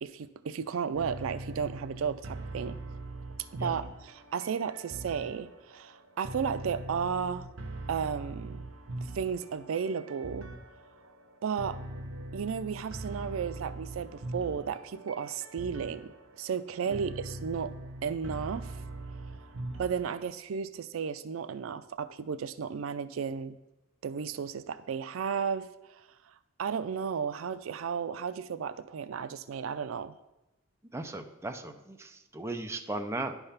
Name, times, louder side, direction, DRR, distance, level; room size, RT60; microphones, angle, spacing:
voice 1, 0.0-2.8 3.5-7.5 7.9-8.6 9.1-10.5 11.4-11.8 12.3-17.7 18.0-18.7 19.8-23.6 24.0-26.1 26.6-30.1, right 6 dB, 90° right, 13 dB, 0.4 m, -34 dB
sound 1, 1.0-20.3, right 2 dB, 70° right, 0.8 m, -42 dB
voice 2, 30.9-33.3, right 2 dB, 15° right, 5 dB, 0.6 m, -37 dB
10.5 x 3.5 x 5.7 m, 0.98 s
head